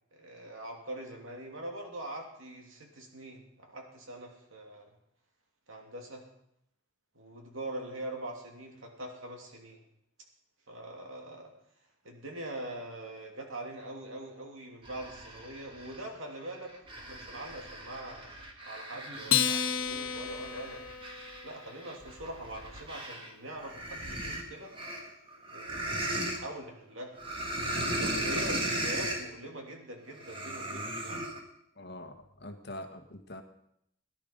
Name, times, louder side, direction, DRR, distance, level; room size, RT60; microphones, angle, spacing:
voice 1, 0.1-4.9 5.7-6.2 7.1-9.8 10.7-11.5 12.0-16.7 17.1-20.8 21.4-24.7 25.5-27.1 28.0-31.2, right 1 dB, 65° right, 1 dB, 2.8 m, -43 dB
sound 1, 14.9-16.0 16.5-23.3 23.6-26.4 27.2-29.3 30.2-31.4, right 1 dB, 25° right, 1.8 m, -37 dB
Acoustic guitar, 19.3-21.9, left 8 dB, 75° left, 1.3 m, -31 dB
voice 2, 31.8-33.4, left 1 dB, 50° left, 6 dB, 1.5 m, -44 dB
17.5 x 11.0 x 5.3 m, 0.77 s
head